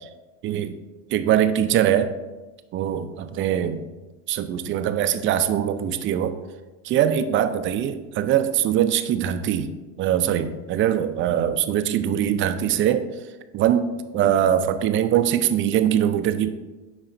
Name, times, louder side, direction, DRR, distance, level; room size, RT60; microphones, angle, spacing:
voice 1, 0.4-0.7 1.1-2.1 2.7-3.8 4.3-6.3 6.8-9.7 10.0-13.1 13.5-16.5, right 10 dB, 35° right, 10 dB, 0.4 m, -22 dB
10.5 x 4.0 x 2.6 m, 1.2 s
hypercardioid pair, 100°, 37 cm